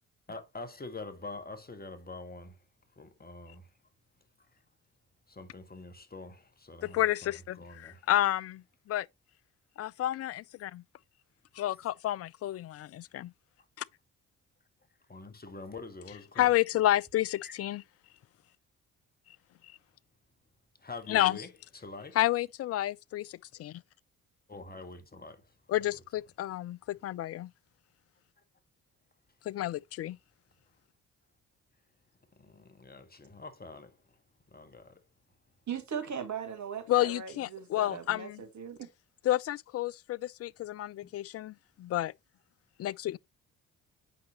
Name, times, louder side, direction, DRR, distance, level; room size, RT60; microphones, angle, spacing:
voice 1, 0.3-2.6 3.0-3.7 4.5-4.6 5.3-8.1 15.1-16.5 17.4-17.6 20.8-22.2 24.5-25.5 26.9-27.0 32.3-34.2 34.5-35.0, left 3 dB, 25° left, 1.7 m, -45 dB
voice 2, 6.8-9.1 9.8-10.8 11.6-13.3 16.4-17.8 21.1-21.4 22.2-23.8 25.7-27.5 29.5-30.2 36.9-38.4 39.2-42.1 42.8-43.2, left 14 dB, 40° left, 0.4 m, -30 dB
voice 3, 35.7-38.9, right 7 dB, 45° right, 2.1 m, -39 dB
8.3 x 5.8 x 3.0 m
hypercardioid pair, 45°, 40 cm